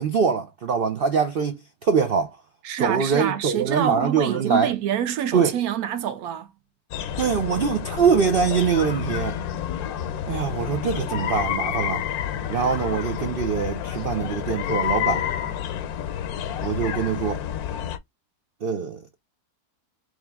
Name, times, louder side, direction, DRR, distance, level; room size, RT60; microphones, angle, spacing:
voice 1, 0.0-2.4 2.8-4.7 5.3-5.5 7.2-9.4 10.3-12.0 12.5-15.2 16.6-17.4 18.6-19.0, right 6 dB, 90° right, 0.5 m, -23 dB
voice 2, 2.6-6.5, right 10 dB, 75° right, 1.2 m, -26 dB
sound 1, 6.9-18.0, left 10 dB, 75° left, 1.1 m, -29 dB
3.6 x 3.0 x 3.4 m
omnidirectional pair, 1.7 m